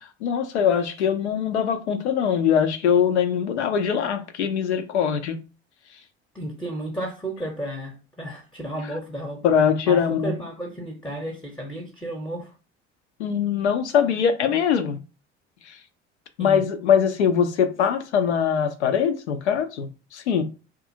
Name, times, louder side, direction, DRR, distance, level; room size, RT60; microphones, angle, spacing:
voice 1, 0.2-5.4 9.4-10.3 13.2-15.0 15.7-15.8 16.4-20.4, left 7 dB, 75° left, 0.5 m, -22 dB
voice 2, 6.3-9.4 9.9-12.5 16.4-16.6, right 1 dB, 5° left, 0.7 m, -33 dB
2.6 x 2.4 x 2.6 m
figure-of-eight pair, 60°, 34 cm